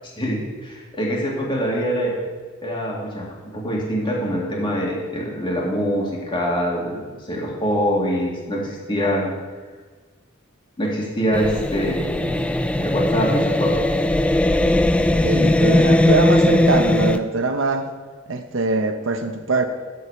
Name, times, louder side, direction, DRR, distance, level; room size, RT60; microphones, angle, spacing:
voice 1, 0.2-2.1 2.6-9.3 10.8-12.4 12.8-14.1, equal, 25° left, -3 dB, 2.2 m, -24 dB
sound 1, 11.3-17.2, left 1 dB, 5° left, 0.3 m, -18 dB
voice 2, 15.2-17.9 18.3-19.7, right 3 dB, 70° right, 7 dB, 0.7 m, -22 dB
11.5 x 4.7 x 6.9 m, 1.4 s
head